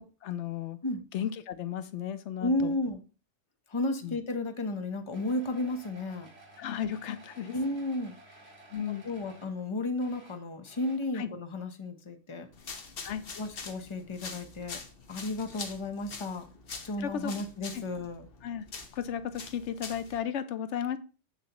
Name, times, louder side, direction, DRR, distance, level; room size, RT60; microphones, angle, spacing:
voice 1, 0.0-0.8 1.1-2.7 4.0-4.2 6.6-7.6 8.7-9.0 11.1-11.3 13.0-13.2 17.0-17.3 17.7-17.8 18.4-18.7 18.9-21.0, left 9 dB, 85° left, 12 dB, 1.0 m, -34 dB
voice 2, 2.4-3.0 3.7-6.3 7.5-8.4 9.0-12.5 13.4-14.8 15.1-16.5 16.8-18.2, left 2 dB, 30° left, 7 dB, 0.9 m, -33 dB
sound 1, 5.1-9.7 9.9-11.2 12.4-12.5 12.8-12.9, right 2 dB, 65° right, 2.1 m, -55 dB
sound 2, 12.5-20.2, left 4 dB, 55° left, 1.2 m, -44 dB
7.6 x 6.9 x 2.9 m, 0.35 s
omnidirectional pair, 1.2 m